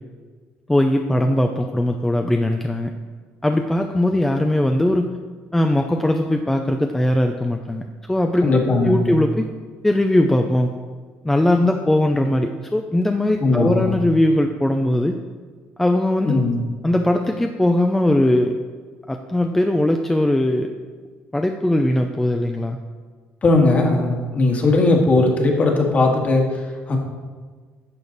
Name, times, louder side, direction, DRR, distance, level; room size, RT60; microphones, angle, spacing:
voice 1, 0.7-2.9 3.4-5.1 5.5-8.5 8.8-9.5 9.8-10.8 11.2-15.2 15.8-16.4 16.8-18.6 19.1-20.7 21.3-22.8, left 1 dB, 10° left, 4 dB, 0.5 m, -20 dB
voice 2, 8.4-9.2 13.4-13.9 16.2-16.6 23.4-27.0, left 2 dB, 35° left, 1 dB, 1.8 m, -18 dB
11.0 x 6.6 x 4.0 m, 1.5 s
cardioid pair, 105°, 4 cm